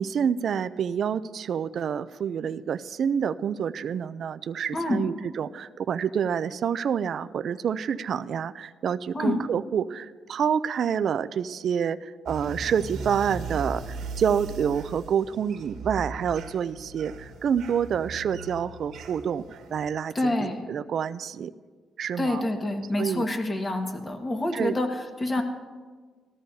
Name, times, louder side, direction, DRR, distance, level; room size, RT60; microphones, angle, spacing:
voice 1, 0.0-19.4 19.7-21.5 22.0-22.4 23.0-23.2 24.5-24.7, right 7 dB, 60° right, 12 dB, 0.4 m, -28 dB
voice 2, 4.7-5.0 9.1-9.4 20.1-20.7 22.2-25.4, left 1 dB, 25° left, 4 dB, 1.5 m, -27 dB
sound 1, 12.3-19.9, right 4 dB, 80° right, 1.4 m, -38 dB
19.0 x 13.5 x 2.7 m, 1.5 s
cardioid pair, 90°, 0 cm